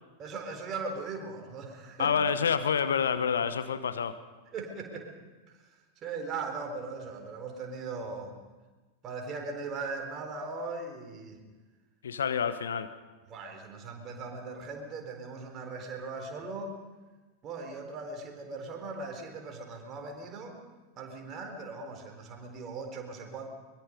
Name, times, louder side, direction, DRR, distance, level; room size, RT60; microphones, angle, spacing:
voice 1, 0.2-2.2 4.5-5.2 5.5-8.3 9.0-11.4 13.3-16.8 17.4-20.6 21.0-23.5, right 4 dB, 30° right, 3 dB, 4.2 m, -39 dB
voice 2, 2.0-4.2 12.0-12.9, left 7 dB, 65° left, 12 dB, 1.1 m, -28 dB
23.5 x 22.5 x 5.3 m, 1.2 s
figure-of-eight pair, 90°, 0 cm